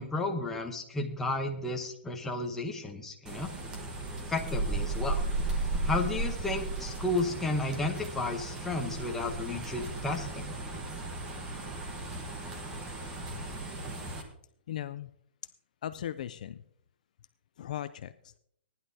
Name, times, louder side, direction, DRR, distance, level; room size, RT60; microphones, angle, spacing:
voice 1, 0.0-3.5 4.3-5.2 5.8-10.5, left 2 dB, 5° left, 1 dB, 0.9 m, -33 dB
sound 1, 3.3-14.2, right 2 dB, 10° right, 1.2 m, -35 dB
voice 2, 14.7-15.1 15.8-16.6 17.6-18.3, left 11 dB, 45° left, 13 dB, 0.4 m, -38 dB
18.5 x 10.5 x 2.8 m, 0.70 s
hypercardioid pair, 170°, 6 cm